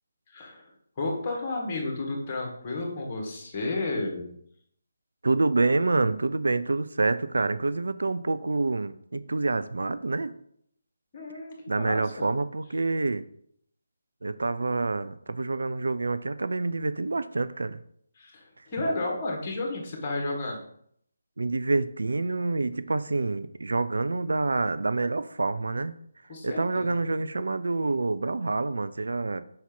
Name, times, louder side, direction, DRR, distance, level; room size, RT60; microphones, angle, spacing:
voice 1, 0.3-0.7 1.0-4.3 11.1-12.3 18.2-20.6 26.3-27.1, left 2 dB, 25° left, 0 dB, 1.9 m, -32 dB
voice 2, 5.2-10.3 11.7-13.2 14.2-17.8 21.4-26.0 26.4-29.4, right 3 dB, 60° right, 12 dB, 0.4 m, -27 dB
5.7 x 4.3 x 5.4 m, 0.68 s
figure-of-eight pair, 150°, 0 cm